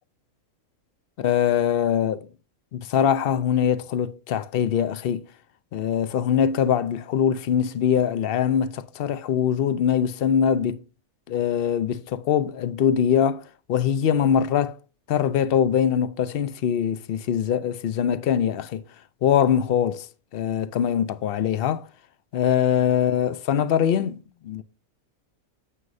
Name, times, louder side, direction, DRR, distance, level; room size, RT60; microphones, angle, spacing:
voice 1, 1.2-2.3 2.7-5.3 5.7-10.8 11.3-13.4 13.7-14.8 15.1-18.8 19.2-20.1 20.3-21.9 22.3-24.6, left 8 dB, 75° left, 0.5 m, -23 dB
9.4 x 7.6 x 2.6 m
omnidirectional pair, 1.5 m